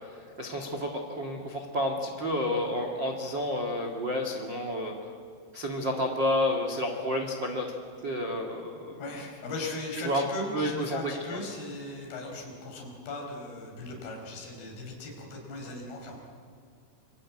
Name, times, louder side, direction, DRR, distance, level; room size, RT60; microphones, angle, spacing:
voice 1, 0.4-4.9 5.5-7.7 8.0-9.0 10.0-10.2 10.5-11.4, left 1 dB, 85° right, 2 dB, 1.0 m, -30 dB
voice 2, 9.0-16.2, left 2 dB, 50° left, 0 dB, 6.5 m, -38 dB
27.0 x 24.5 x 8.6 m, 2.2 s
omnidirectional pair, 6.0 m